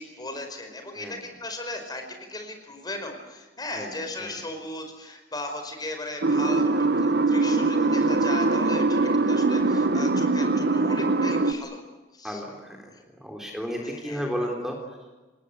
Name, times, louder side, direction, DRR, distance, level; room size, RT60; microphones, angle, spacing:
voice 1, 0.0-11.8 12.1-12.4 12.9-13.0 13.8-14.3, left 2 dB, 25° left, 5 dB, 5.1 m, -37 dB
sound 1, 6.2-11.5, right 3 dB, 60° right, 1.4 m, -22 dB
voice 2, 12.2-12.8 13.2-14.8, equal, 5° right, 1 dB, 3.8 m, -32 dB
28.0 x 20.0 x 8.2 m, 1.2 s
head